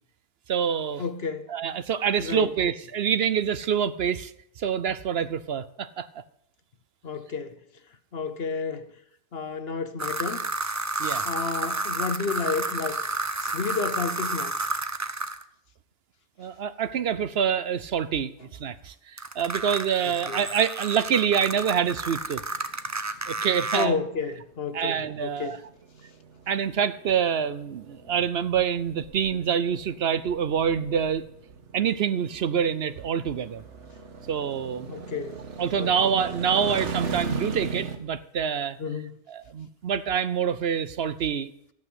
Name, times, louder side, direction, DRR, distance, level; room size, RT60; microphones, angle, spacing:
voice 1, 0.5-1.0 1.5-4.3 4.6-6.1 11.0-11.3 16.4-22.4 23.3-24.0 24.7-25.6 26.5-31.2 31.7-33.6 34.3-34.9 35.6-38.8 39.3-41.5, right 8 dB, 65° right, 0.9 m, -26 dB
voice 2, 1.0-1.5 2.2-2.5 7.0-7.6 8.1-8.9 9.3-10.4 11.2-13.0 13.4-14.7 20.3-20.4 23.7-25.6 34.9-35.4 35.8-36.1 36.6-36.7 38.8-39.2, left 5 dB, 60° left, 1.2 m, -31 dB
sound 1, 10.0-15.4 19.2-23.9, right 3 dB, 20° right, 0.5 m, -31 dB
sound 2, 22.0-38.0, right 5 dB, 85° right, 1.7 m, -38 dB
14.5 x 8.6 x 7.9 m
omnidirectional pair, 1.2 m